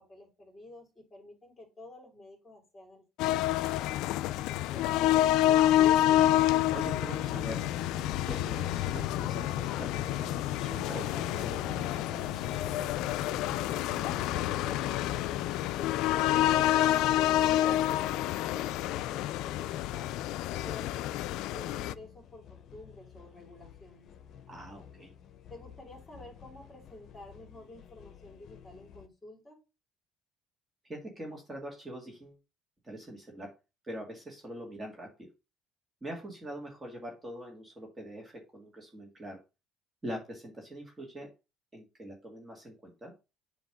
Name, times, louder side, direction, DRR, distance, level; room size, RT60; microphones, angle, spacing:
voice 1, 0.0-3.8 20.6-24.1 25.5-29.6, left 1 dB, 20° left, 1 dB, 3.2 m, -51 dB
sound 1, 3.2-21.9, left 13 dB, 70° left, 0.3 m, -28 dB
sound 2, 5.4-16.9, right 11 dB, 90° right, 0.6 m, -50 dB
voice 2, 6.7-7.7 8.3-12.6 17.5-17.8 24.5-25.1 30.8-32.4 32.8-33.5 33.8-35.3 36.0-39.4 40.0-41.3 41.7-43.1, right 1 dB, 15° right, 0 dB, 1.9 m, -43 dB
sound 3, 14.3-29.1, left 9 dB, 50° left, 0.9 m, -53 dB
7.8 x 3.1 x 5.9 m, 0.28 s
cardioid pair, 130°, 0 cm